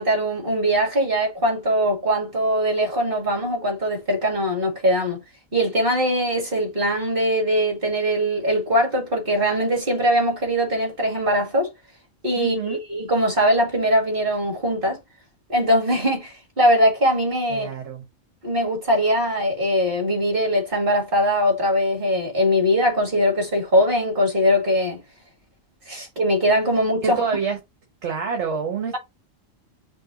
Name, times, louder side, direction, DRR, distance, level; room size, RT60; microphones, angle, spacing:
voice 1, 0.0-5.2 5.5-11.7 12.2-15.0 15.5-17.7 18.4-25.0 25.9-27.2, equal, 45° right, 2.1 m, -21 dB
voice 2, 12.4-12.8 17.5-18.0 27.0-27.6 28.0-29.0, right 5 dB, 65° right, 1.3 m, -27 dB
5.3 x 2.6 x 3.8 m
omnidirectional pair, 1.3 m